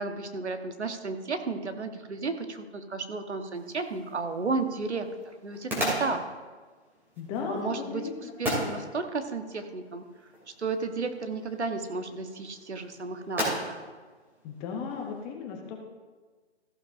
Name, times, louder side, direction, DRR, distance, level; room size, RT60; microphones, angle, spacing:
voice 1, 0.0-6.3 7.5-8.1 8.4-10.0 10.6-13.7, right 4 dB, 80° right, 7 dB, 1.3 m, -33 dB
sound 1, 3.5-15.2, equal, 5° right, 2.7 m, -37 dB
voice 2, 7.2-8.3 14.4-15.8, left 6 dB, 10° left, 2 dB, 0.6 m, -35 dB
14.5 x 11.5 x 2.6 m, 1.4 s
figure-of-eight pair, 135°, 33 cm